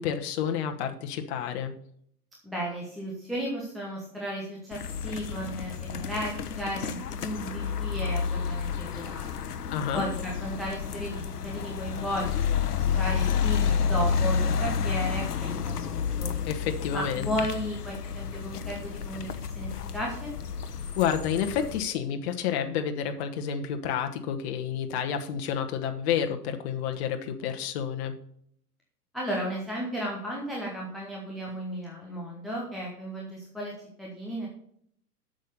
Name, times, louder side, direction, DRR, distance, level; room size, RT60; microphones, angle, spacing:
voice 1, 0.0-1.7 9.7-10.0 16.4-17.3 21.0-28.2, left 8 dB, 40° left, 5 dB, 1.1 m, -30 dB
voice 2, 2.4-9.3 9.9-12.3 12.6-16.3 16.9-20.3 29.1-33.7 34.0-34.5, equal, ahead, -4 dB, 0.3 m, -34 dB
sound 1, 4.7-21.8, left 6 dB, 75° left, 0.9 m, -30 dB
7.9 x 6.5 x 6.6 m, 0.67 s
figure-of-eight pair, 100°, 47 cm